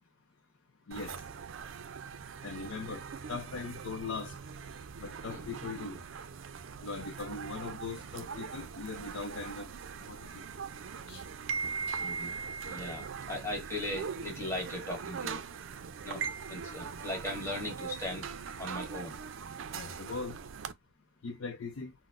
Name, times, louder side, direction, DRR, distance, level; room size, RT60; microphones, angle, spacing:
voice 1, 0.9-1.2 2.4-4.4 5.0-6.0 6.8-9.7 10.0-10.4 11.1-11.3 19.7-20.4 21.2-21.9, left 4 dB, 85° left, 0.5 m, -40 dB
sound 1, 0.9-20.7, right 6 dB, 75° right, 0.4 m, -41 dB
voice 2, 12.0-12.3 12.6-15.5 16.0-18.3 18.6-19.2, left 1 dB, 15° left, 1.4 m, -38 dB
4.0 x 2.0 x 2.5 m
head